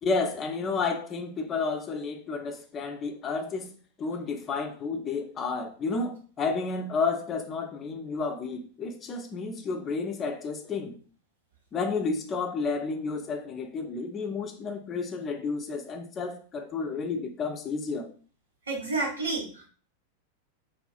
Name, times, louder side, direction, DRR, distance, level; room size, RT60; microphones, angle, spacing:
voice 1, 0.0-3.7 4.0-11.0 11.7-18.1, left 4 dB, 25° left, 0.4 m, -31 dB
voice 2, 18.7-19.7, right 3 dB, 75° right, 0.9 m, -30 dB
2.4 x 2.3 x 2.4 m
figure-of-eight pair, 90°, 0 cm